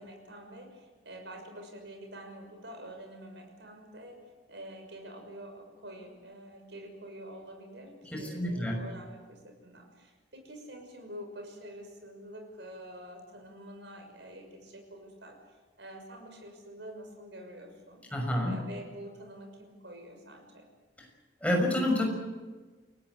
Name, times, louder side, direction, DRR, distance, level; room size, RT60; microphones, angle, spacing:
voice 1, 0.0-18.1 18.4-20.7, right 1 dB, 70° right, 4 dB, 6.3 m, -47 dB
voice 2, 8.1-8.8 18.1-18.5 21.4-22.1, left 1 dB, 5° left, 1 dB, 6.2 m, -28 dB
29.5 x 17.5 x 8.2 m, 1.3 s
head